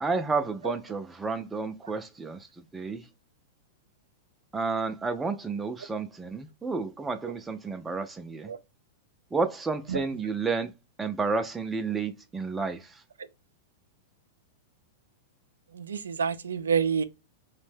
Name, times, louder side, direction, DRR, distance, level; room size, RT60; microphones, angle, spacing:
voice 1, 0.0-3.1 4.5-8.5 9.3-10.7 11.0-13.0, right 4 dB, 15° right, 0.3 m, -31 dB
voice 2, 15.7-17.0, right 6 dB, 85° right, 0.3 m, -27 dB
2.6 x 2.1 x 3.2 m
hypercardioid pair, 110°, 0 cm